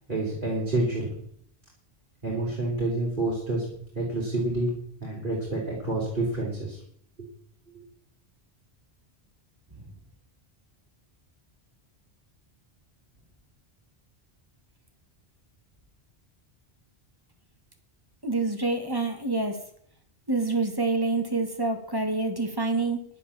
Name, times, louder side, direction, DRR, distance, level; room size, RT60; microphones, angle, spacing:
voice 1, 0.1-1.2 2.2-3.7 3.9-4.7 5.0-6.8 7.2-7.3, right 2 dB, 50° right, -5 dB, 4.0 m, -28 dB
voice 2, 18.2-19.6 20.3-23.0, right 3 dB, 20° right, 5 dB, 1.9 m, -27 dB
11.5 x 8.5 x 7.2 m, 0.63 s
omnidirectional pair, 1.1 m